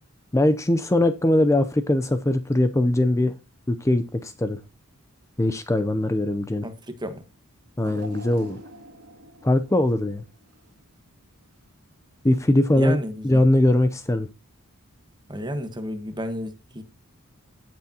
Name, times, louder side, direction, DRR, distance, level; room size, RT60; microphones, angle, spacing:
voice 1, 0.3-3.4 3.7-4.6 5.4-6.7 7.8-8.6 9.4-10.2 12.2-13.0 13.2-14.3, left 1 dB, 15° left, 0.5 m, -21 dB
voice 2, 6.6-7.2 12.7-13.4 15.3-16.8, equal, 20° right, 1.2 m, -32 dB
sound 1, 7.8-11.0 11.4-11.6 12.6-12.7, right 2 dB, 90° right, 1.9 m, -45 dB
16.0 x 6.2 x 2.8 m
head